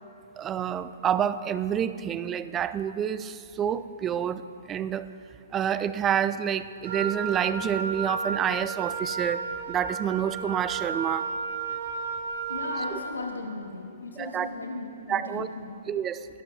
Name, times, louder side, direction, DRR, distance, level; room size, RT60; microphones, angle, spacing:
voice 1, 0.4-5.1 5.5-9.4 9.7-11.3 14.2-14.5 15.1-15.5 15.9-16.3, right 9 dB, 20° right, 14 dB, 0.5 m, -28 dB
Wind instrument woodwind instrument, 6.8-13.1, right 5 dB, 60° right, 1.4 m, -33 dB
voice 2, 12.5-15.8, left 3 dB, 85° left, 1 dB, 1.9 m, -37 dB
20.5 x 13.5 x 2.8 m, 2.4 s
figure-of-eight pair, 125°, 0 cm